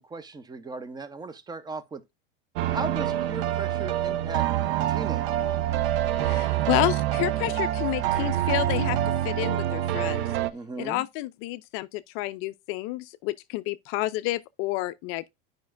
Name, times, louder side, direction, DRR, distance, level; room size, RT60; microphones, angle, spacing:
voice 1, 0.1-2.0 2.7-4.5 4.9-5.3 10.5-11.0, right 3 dB, 15° right, 0.7 m, -36 dB
sound 1, 2.6-10.5, right 12 dB, 65° right, 0.6 m, -26 dB
voice 2, 6.1-9.0 9.2-10.2 10.8-15.3, left 18 dB, 45° left, 0.4 m, -30 dB
10.0 x 5.1 x 2.5 m
hypercardioid pair, 105°, 30 cm